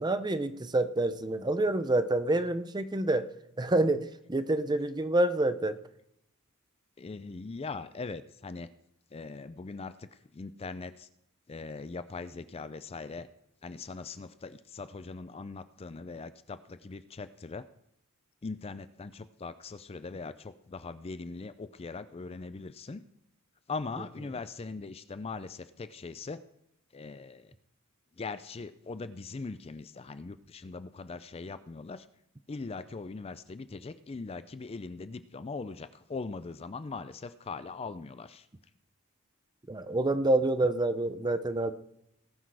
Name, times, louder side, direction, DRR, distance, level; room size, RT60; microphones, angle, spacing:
voice 1, 0.0-3.3 3.6-5.8 39.7-41.7, right 2 dB, 20° right, 11 dB, 0.6 m, -27 dB
voice 2, 7.0-8.7 9.1-11.1 11.5-13.3 13.6-17.6 18.4-23.0 23.7-26.4 26.9-27.5 28.2-32.1 32.5-38.5 40.1-40.4, left 4 dB, 25° left, 13 dB, 0.4 m, -41 dB
18.5 x 6.2 x 4.7 m, 0.79 s
head